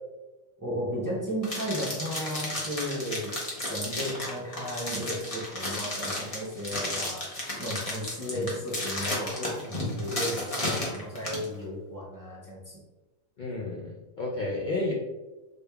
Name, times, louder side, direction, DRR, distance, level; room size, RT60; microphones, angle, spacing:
voice 1, 0.6-12.8, equal, 25° right, -6 dB, 0.5 m, -35 dB
sound 1, 1.4-11.5, left 1 dB, 30° left, 0.7 m, -33 dB
voice 2, 13.4-14.9, left 2 dB, 85° left, -4 dB, 0.4 m, -32 dB
3.4 x 3.3 x 2.2 m, 1.1 s
omnidirectional pair, 1.4 m